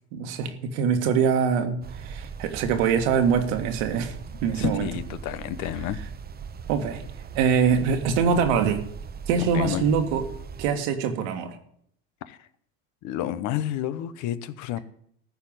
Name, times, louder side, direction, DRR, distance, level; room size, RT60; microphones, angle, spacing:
voice 1, 0.1-4.1 4.4-4.9 6.7-7.0 7.3-8.8 9.3-10.2 10.6-11.6, right 6 dB, 80° right, 1.9 m, -23 dB
sound 1, 1.8-10.7, right 6 dB, 30° right, 0.8 m, -39 dB
voice 2, 4.5-6.0 9.4-9.9 12.3-12.4 13.0-14.8, left 12 dB, 65° left, 0.9 m, -30 dB
14.0 x 4.7 x 9.0 m
supercardioid pair, 90°, 32 cm